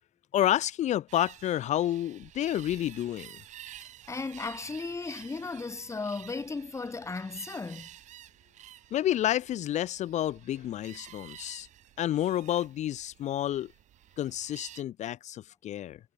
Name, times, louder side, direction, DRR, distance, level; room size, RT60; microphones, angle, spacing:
voice 1, 0.3-3.3 8.9-11.7 12.0-13.7 14.2-16.0, left 12 dB, 75° left, 0.5 m, -29 dB
sound 1, 1.1-14.8, right 12 dB, 90° right, 0.9 m, -51 dB
voice 2, 4.1-7.9, left 4 dB, 25° left, 1.3 m, -35 dB
cardioid pair, 120°, 12 cm